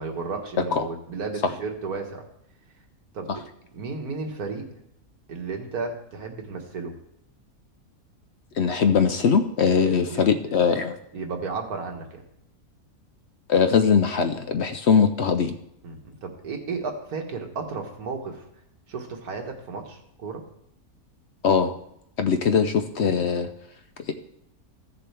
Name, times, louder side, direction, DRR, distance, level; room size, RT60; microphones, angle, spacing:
voice 1, 0.0-2.3 3.1-3.4 3.7-4.7 5.3-6.9 9.8-10.2 11.1-12.2 15.8-18.5 18.9-20.4, right 4 dB, 90° right, 3 dB, 1.9 m, -33 dB
voice 2, 8.6-11.0 13.5-15.6 21.4-21.7 22.2-23.5 24.1-24.2, left 6 dB, 60° left, 8 dB, 0.8 m, -21 dB
15.0 x 6.8 x 3.3 m, 0.75 s
omnidirectional pair, 1.5 m